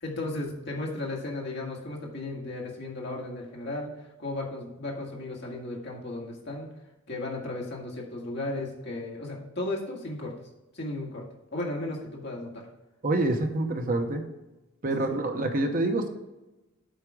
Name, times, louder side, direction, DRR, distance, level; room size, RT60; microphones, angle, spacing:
voice 1, 0.0-6.7 7.1-10.3 10.7-11.3 11.5-12.7 14.8-15.2, left 2 dB, 55° left, -2 dB, 1.8 m, -35 dB
voice 2, 13.0-14.2 14.8-16.1, right 2 dB, 40° right, 4 dB, 0.9 m, -26 dB
8.0 x 4.9 x 4.8 m, 1.0 s
head